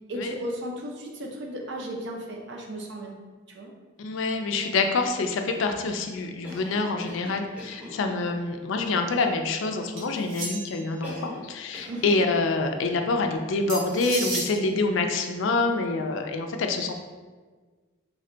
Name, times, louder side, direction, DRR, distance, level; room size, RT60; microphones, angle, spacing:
voice 1, 0.1-3.2 3.5-3.7 11.9-12.1, equal, 55° right, 0 dB, 0.5 m, -35 dB
voice 2, 4.0-16.9, left 3 dB, 65° left, 5 dB, 0.4 m, -26 dB
Cough, 6.4-8.0 11.0-11.5 11.7-12.1, left 1 dB, 5° right, 0.6 m, -41 dB
sound 1, 10.0-10.9 13.7-14.5, right 2 dB, 85° right, 0.8 m, -32 dB
3.4 x 2.2 x 3.7 m, 1.4 s
head